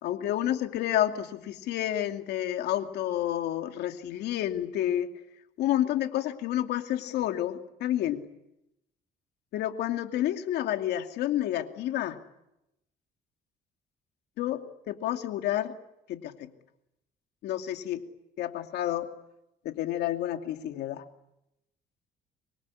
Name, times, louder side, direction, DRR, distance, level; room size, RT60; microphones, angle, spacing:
voice 1, 0.0-5.1 5.6-8.2 9.5-12.2 14.4-15.8 16.1-16.5 17.4-18.0 18.4-19.1 19.6-21.0, left 12 dB, 80° left, 7 dB, 2.6 m, -30 dB
26.5 x 22.5 x 9.7 m, 0.85 s
cardioid pair, 110°, 17 cm